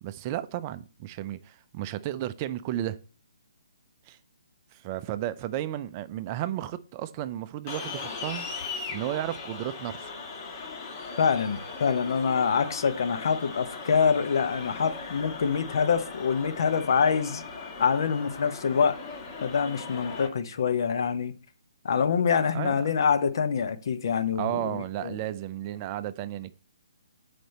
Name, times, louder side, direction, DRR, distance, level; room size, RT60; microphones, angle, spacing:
voice 1, 0.0-3.0 4.1-4.2 4.7-8.5 8.9-10.1 22.5-22.7 24.4-26.6, right 13 dB, 30° right, 0.5 m, -33 dB
sound 1, 7.7-20.3, left 4 dB, 35° left, 1.6 m, -39 dB
voice 2, 11.2-17.4 17.8-19.0 19.4-21.3 21.8-25.1, left 6 dB, 60° left, 0.9 m, -25 dB
7.8 x 5.1 x 4.2 m
figure-of-eight pair, 140°, 3 cm